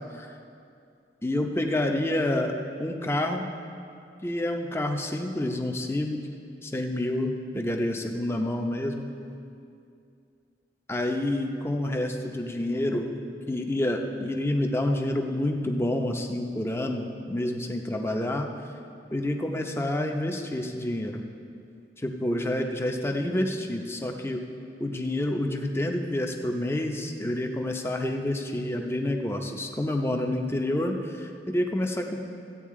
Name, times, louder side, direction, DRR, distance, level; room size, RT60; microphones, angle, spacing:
voice 1, 1.2-2.5 2.8-3.4 4.2-6.2 6.6-9.1 10.9-13.1 13.5-18.5 19.1-21.2 22.0-24.4 24.8-32.2, left 1 dB, 15° left, 3 dB, 0.7 m, -28 dB
15.0 x 9.1 x 3.7 m, 2.4 s
head